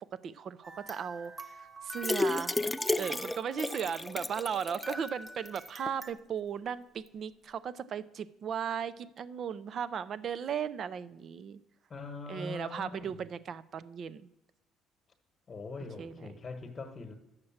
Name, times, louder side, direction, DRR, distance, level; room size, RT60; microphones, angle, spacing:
voice 1, 0.0-2.5 2.9-11.6 12.3-14.3 16.0-16.3, right 7 dB, 50° right, 17 dB, 0.5 m, -36 dB
sound 1, 0.6-4.5 4.8-6.1, right 1 dB, 20° right, 0.9 m, -47 dB
sound 2, 2.0-5.1 5.5-5.6 5.9-6.0, left 2 dB, 10° left, 0.3 m, -32 dB
voice 2, 11.9-13.1 15.5-17.1, left 3 dB, 30° left, 5 dB, 1.2 m, -42 dB
9.6 x 6.6 x 7.2 m, 1.0 s
cardioid pair, 115°, 0 cm